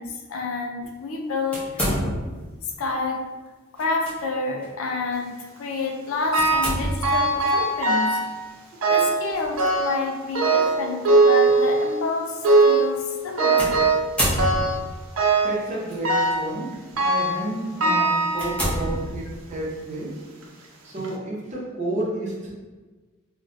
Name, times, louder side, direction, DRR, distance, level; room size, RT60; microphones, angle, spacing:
voice 1, 0.0-1.9 2.8-3.3 3.7-8.2 8.9-13.8, left 3 dB, 90° left, 2 dB, 0.5 m, -29 dB
sound 1, 1.5-2.5 3.8-4.1 4.6-4.7 6.4-7.2 9.3-9.6 10.4-10.5 13.6-15.0 15.9-16.3 16.9-17.1 17.6-17.7 18.3-19.6, equal, 5° left, 0.8 m, -28 dB
sound 2, 6.3-6.8 7.0-8.3 8.8-9.2 9.6-10.0 10.4-12.0 12.4-12.9 13.4-14.1 14.4-14.8 15.2-15.6 16.0-16.5 17.0-17.4 17.8-18.9 19.5-19.6 20.4-20.5 21.0-21.1, right 3 dB, 70° right, 0.5 m, -20 dB
voice 2, 15.4-16.7 17.0-20.1 20.8-22.5, right 1 dB, 35° right, -5 dB, 0.7 m, -30 dB
2.4 x 2.1 x 3.7 m, 1.3 s
head